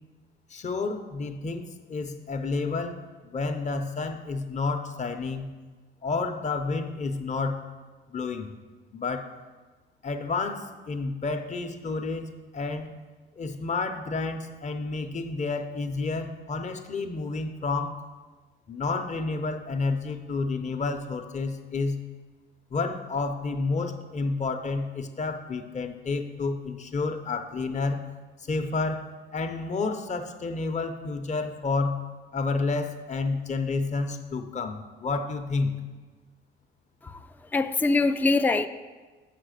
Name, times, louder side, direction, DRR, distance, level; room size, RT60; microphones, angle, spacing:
voice 1, 0.5-5.5 6.0-7.6 8.1-8.5 8.9-9.3 10.0-13.0 13.4-18.0 18.7-22.0 22.7-28.0 28.4-32.0 32.3-35.8, left 3 dB, 35° left, 0.8 m, -30 dB
voice 2, 37.5-38.7, left 3 dB, 10° left, 0.4 m, -23 dB
7.4 x 6.0 x 6.5 m
cardioid pair, 90°, 20 cm